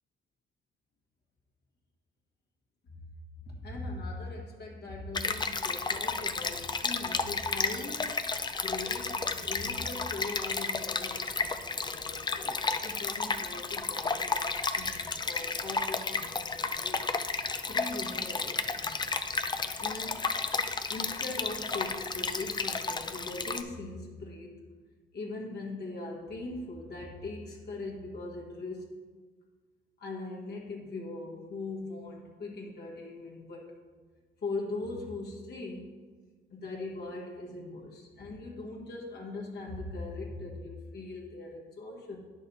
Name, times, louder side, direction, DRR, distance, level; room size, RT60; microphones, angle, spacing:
voice 1, 3.5-8.1 8.6-17.1 17.7-18.9 19.8-20.3 20.9-24.7 25.1-28.9 30.0-33.8 34.4-36.0 36.5-42.2, left 2 dB, 55° left, -2 dB, 1.7 m, -40 dB
Stream, 5.1-23.6, left 4 dB, 20° left, 0.5 m, -32 dB
9.6 x 6.3 x 4.2 m, 1.4 s
cardioid pair, 90°, 20 cm